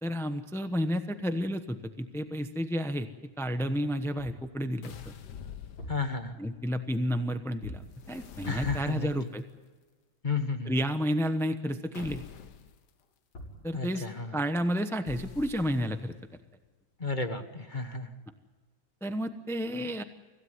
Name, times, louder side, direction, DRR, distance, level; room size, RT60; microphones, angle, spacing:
voice 1, 0.0-3.1 3.4-5.1 6.4-9.4 10.7-12.2 13.6-14.1 14.3-16.1 19.0-20.0, equal, 5° left, 8 dB, 0.3 m, -31 dB
sound 1, 4.2-4.5 5.6-6.2 7.6-8.0 8.6-9.0 13.0-13.1 13.3-13.7, equal, 80° left, 7.3 m, -43 dB
sound 2, 4.8-6.4 7.9-9.4 11.9-12.8 15.1-16.2, left 8 dB, 60° left, 1.6 m, -46 dB
voice 2, 5.9-6.4 8.5-9.1 10.2-10.7 13.7-14.4 17.0-18.1, left 4 dB, 25° left, 7 dB, 1.4 m, -32 dB
25.5 x 16.5 x 9.6 m, 1.4 s
omnidirectional pair, 2.2 m